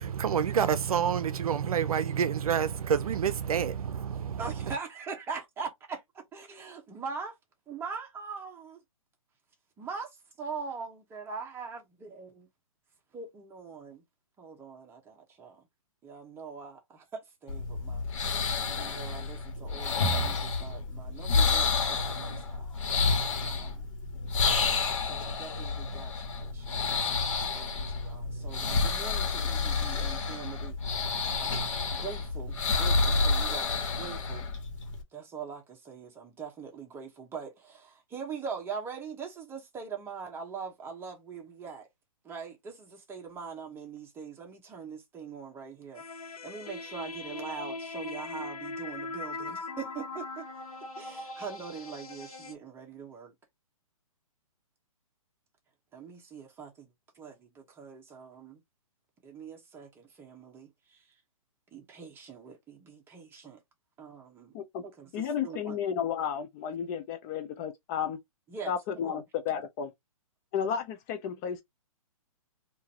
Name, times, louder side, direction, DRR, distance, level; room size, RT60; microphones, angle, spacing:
voice 1, 0.0-4.8, right 8 dB, 75° right, 0.6 m, -28 dB
voice 2, 4.4-6.0 6.3-7.3 7.7-8.8 9.8-10.1 10.4-12.5 13.1-14.0 14.4-15.6 16.0-18.0 18.7-22.7 23.4-23.9 25.0-31.0 31.4-34.5 35.1-41.9 42.2-46.0 46.4-50.4 51.0-53.3 55.9-58.6 59.2-61.0 61.7-63.6 64.0-64.6 65.0-65.8 68.5-68.7 69.0-69.2, right 5 dB, 10° right, 1.1 m, -42 dB
sound 1, 17.5-35.0, left 4 dB, 55° left, 1.5 m, -29 dB
sound 2, 45.9-52.5, left 3 dB, 80° left, 1.3 m, -40 dB
voice 3, 65.1-68.2 68.7-69.9 70.5-71.6, left 8 dB, 30° left, 0.5 m, -32 dB
3.7 x 2.7 x 2.8 m
hypercardioid pair, 145°, 19 cm